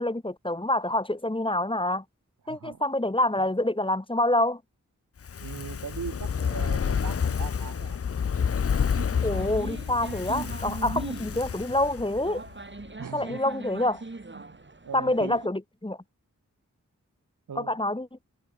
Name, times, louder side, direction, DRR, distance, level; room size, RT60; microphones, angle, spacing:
voice 1, 0.0-2.0 2.5-4.6 9.2-12.4 13.1-14.0 14.9-16.0 17.5-18.1, left 1 dB, 15° left, 1.3 m, -27 dB
voice 2, 2.5-2.8 5.4-8.0 9.7-9.8 10.9-11.2 13.0-13.4 14.3-15.4 17.5-17.8, right 7 dB, 70° right, 0.9 m, -40 dB
Fire, 5.2-12.5 12.8-12.9, left 7 dB, 45° left, 0.5 m, -29 dB
sound 1, 9.0-15.5, right 3 dB, 35° right, 2.5 m, -40 dB
wide cardioid pair, 60°, 32 cm